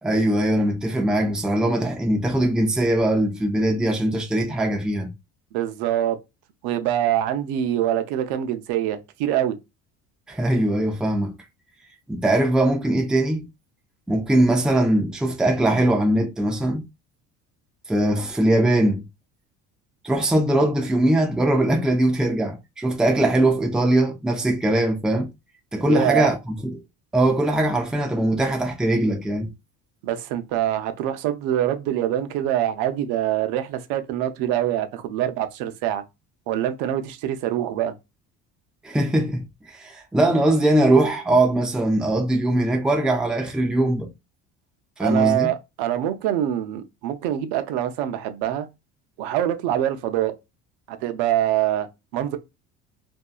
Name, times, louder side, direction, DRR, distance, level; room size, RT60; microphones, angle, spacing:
voice 1, 0.0-5.1 10.3-11.3 12.1-13.5 14.1-16.8 17.9-19.0 20.0-25.3 25.7-26.7 27.1-29.5 38.8-44.1 45.0-45.5, right 1 dB, ahead, 0.4 m, -21 dB
voice 2, 5.5-6.2 6.6-9.5 25.9-26.3 30.0-36.0 36.5-37.9 45.0-48.7 49.2-50.3 50.9-51.9 52.1-52.4, right 12 dB, 90° right, 0.6 m, -24 dB
2.7 x 2.2 x 2.4 m
cardioid pair, 125°, 34 cm